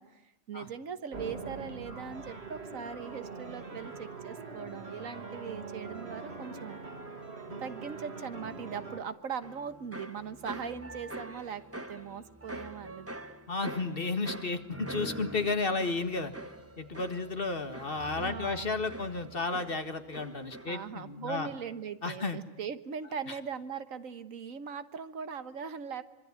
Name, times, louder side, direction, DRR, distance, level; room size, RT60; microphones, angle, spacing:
voice 1, 0.0-6.8 7.6-13.1 18.2-18.7 20.7-26.0, right 6 dB, 85° right, 12 dB, 1.7 m, -40 dB
sound 1, 1.1-9.0, right 4 dB, 55° right, 2.9 m, -43 dB
sound 2, 9.4-21.0 21.3-21.8, right 1 dB, 10° right, 1.2 m, -45 dB
voice 2, 13.5-16.3 16.8-21.5 22.0-22.4, left 3 dB, 45° left, 9 dB, 2.0 m, -33 dB
25.5 x 24.5 x 9.6 m, 0.84 s
omnidirectional pair, 1.4 m